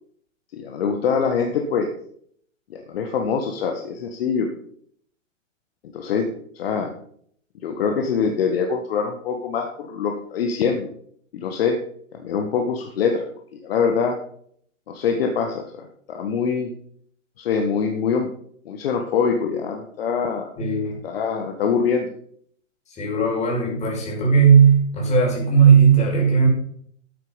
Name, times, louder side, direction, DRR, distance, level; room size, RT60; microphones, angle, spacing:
voice 1, 0.5-1.9 2.7-4.5 5.9-6.3 6.6-6.9 7.6-10.9 11.3-11.8 12.2-13.2 13.5-14.2 14.9-16.7 17.4-18.3 18.7-20.5 21.0-22.1, left 6 dB, 50° left, 3 dB, 1.8 m, -24 dB
voice 2, 20.6-21.0 22.9-26.5, right 6 dB, 15° left, -2 dB, 5.5 m, -17 dB
12.0 x 9.3 x 5.3 m, 0.63 s
figure-of-eight pair, 110°, 39 cm